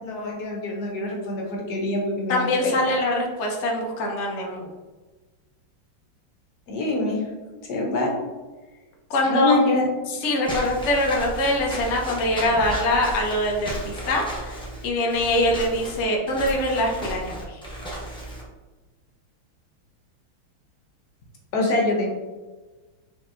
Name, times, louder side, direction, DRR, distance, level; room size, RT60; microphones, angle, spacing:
voice 1, 0.0-3.0 6.7-7.2 7.7-8.1 9.3-9.9 21.5-22.1, left 2 dB, 60° left, -1 dB, 1.3 m, -25 dB
voice 2, 2.3-4.7 9.1-9.5 10.2-14.6 14.8-17.6, left 1 dB, 75° left, 0 dB, 0.6 m, -23 dB
Walk footsteps / Squeak, 10.4-18.4, equal, 5° left, 0.6 m, -34 dB
4.5 x 4.4 x 2.6 m, 1.2 s
omnidirectional pair, 2.2 m